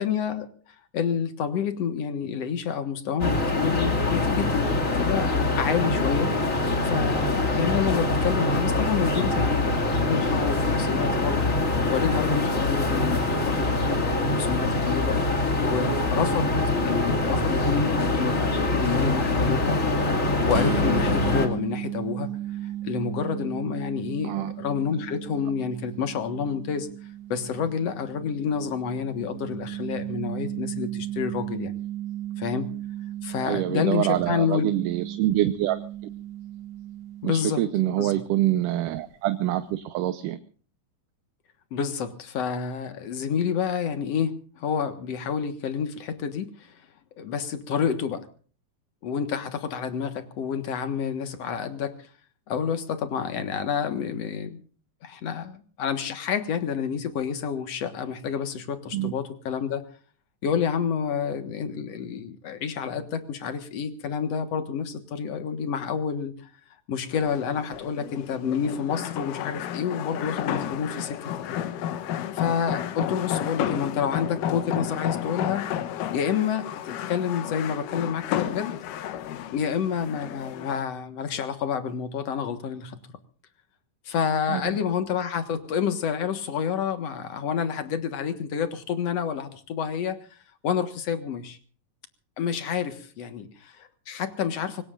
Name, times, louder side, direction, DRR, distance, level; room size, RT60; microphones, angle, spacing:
voice 1, 0.0-16.5 16.8-19.8 20.5-22.3 22.8-26.9 27.3-31.7 32.4-32.7 33.2-34.8 37.2-37.6 38.0-38.1 41.7-46.8 47.2-48.3 49.0-52.1 52.5-54.6 55.0-59.9 60.4-66.5 66.9-71.2 72.1-75.7 76.1-78.8 79.5-83.0 84.1-90.4 90.6-91.6 92.4-94.8, left 7 dB, 55° left, 9 dB, 2.3 m, -29 dB
sound 1, 3.2-21.5, left 2 dB, 25° left, 2.3 m, -24 dB
sound 2, 20.5-38.0, right 12 dB, 60° right, 1.7 m, -35 dB
voice 2, 33.4-35.8 37.2-40.4 58.9-59.1 84.5-84.7, right 14 dB, 80° right, 9 dB, 2.4 m, -25 dB
sound 3, 67.1-80.8, left 11 dB, 80° left, 2.6 m, -32 dB
25.0 x 20.0 x 2.5 m, 0.41 s
omnidirectional pair, 3.8 m